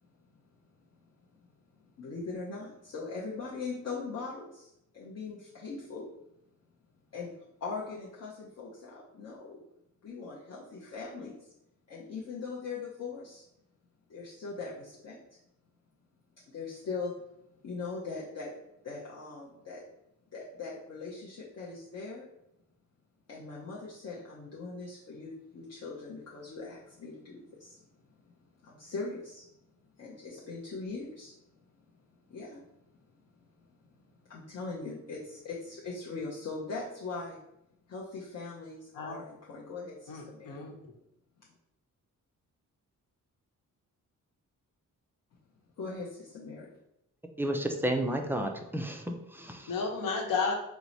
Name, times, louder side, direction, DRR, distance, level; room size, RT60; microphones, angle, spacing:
voice 1, 2.0-6.1 7.1-7.3 7.6-9.6 10.0-11.4 11.9-13.4 14.1-15.2 16.5-17.2 17.6-18.5 18.8-19.8 20.3-22.3 23.3-27.8 28.6-29.5 30.0-31.3 32.3-32.6 34.3-37.4 37.9-40.6 41.4-41.5 45.8-46.7, left 4 dB, 50° left, -5 dB, 0.7 m, -40 dB
voice 2, 40.1-40.7 49.7-50.5, left 4 dB, 85° left, 2 dB, 0.9 m, -32 dB
voice 3, 47.4-49.7, right 1 dB, 5° right, 3 dB, 0.3 m, -32 dB
4.6 x 2.0 x 3.9 m, 0.83 s
wide cardioid pair, 140°, 33 cm